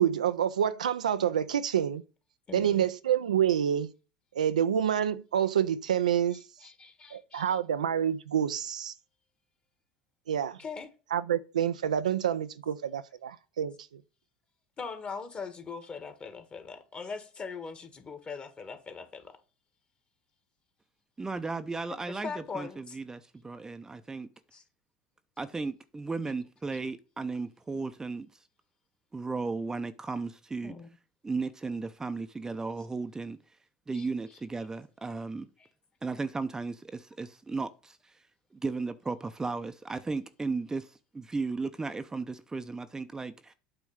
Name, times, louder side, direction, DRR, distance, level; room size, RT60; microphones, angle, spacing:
voice 1, 0.0-2.0 2.5-3.9 4.3-6.4 7.1-8.9 10.3-10.6 11.1-14.0, right 9 dB, 90° right, 0.4 m, -27 dB
voice 2, 2.5-2.9 6.3-7.6 10.6-10.9 14.8-19.4 21.9-23.0 24.5-24.6 30.6-30.9 33.9-34.1 35.6-35.7, left 5 dB, 30° left, 1.5 m, -41 dB
voice 3, 21.2-24.3 25.4-28.3 29.1-30.7 31.2-33.4 33.9-35.5 36.0-38.1 38.5-43.5, right 4 dB, 15° right, 0.6 m, -35 dB
8.6 x 3.1 x 6.4 m
hypercardioid pair, 80°, 4 cm